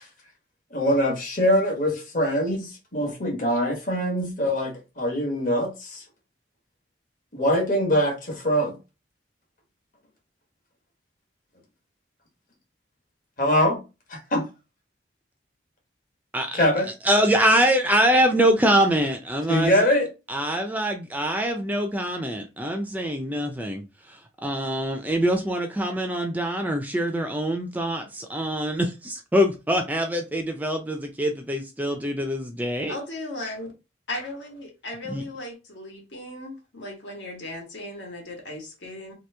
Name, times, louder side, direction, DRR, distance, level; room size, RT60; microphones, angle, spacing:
voice 1, 0.7-6.0 7.3-8.8 13.4-13.8 14.1-14.4 16.5-16.9 19.5-20.1, equal, 45° left, 1.1 m, -23 dB
voice 2, 17.1-19.9 20.3-23.8 24.4-33.0 35.1-35.2, equal, 10° right, 0.4 m, -24 dB
voice 3, 32.9-33.7 34.1-39.1, left 1 dB, 75° left, 1.3 m, -36 dB
2.9 x 2.6 x 3.3 m
head